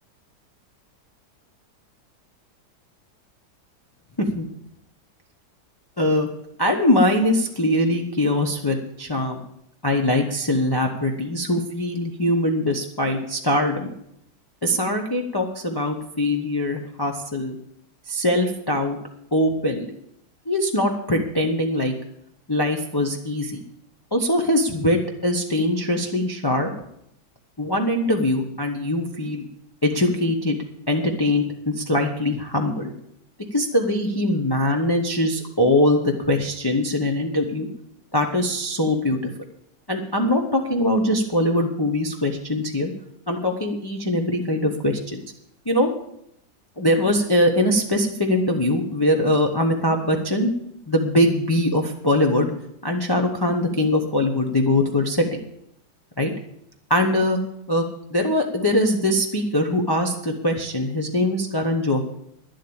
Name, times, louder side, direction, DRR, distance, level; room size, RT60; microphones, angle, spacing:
voice 1, 6.0-6.3 6.6-9.4 9.8-13.9 14.6-17.6 18.1-19.0 19.3-19.9 20.5-21.9 22.5-23.6 24.1-26.7 27.6-29.4 29.8-30.6 30.9-32.9 33.5-37.7 38.1-39.3 39.9-42.9 43.3-45.2 45.7-45.9 46.8-50.5 50.9-52.5 52.8-55.4 56.2-56.3 56.9-57.4 57.7-57.8 58.1-62.0, left 1 dB, 20° left, 1 dB, 0.8 m, -22 dB
11.0 x 7.7 x 8.7 m, 0.75 s
omnidirectional pair, 1.8 m